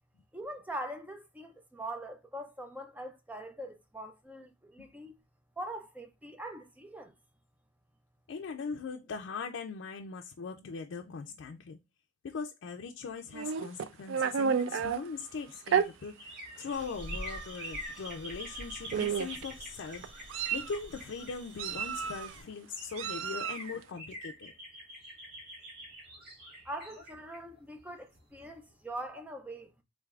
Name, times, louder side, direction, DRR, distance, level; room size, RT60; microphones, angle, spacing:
voice 1, 0.3-5.2 5.6-7.1 26.6-29.7, right 1 dB, 10° right, 0.5 m, -42 dB
voice 2, 8.3-11.8 12.2-24.5, left 5 dB, 80° left, 0.4 m, -40 dB
Meow, 13.3-15.0 15.7-15.9 16.7-16.8 17.2-17.4 18.4-18.5 18.9-19.4 20.0-20.8 21.6-22.3 23.0-23.7, right 7 dB, 85° right, 0.4 m, -31 dB
sound 1, 15.1-21.9 22.5-22.6 22.8-28.5 28.9-29.0, equal, 55° right, 1.5 m, -46 dB
sound 2, 16.7-22.4, equal, 70° right, 1.5 m, -48 dB
3.8 x 3.3 x 2.3 m
head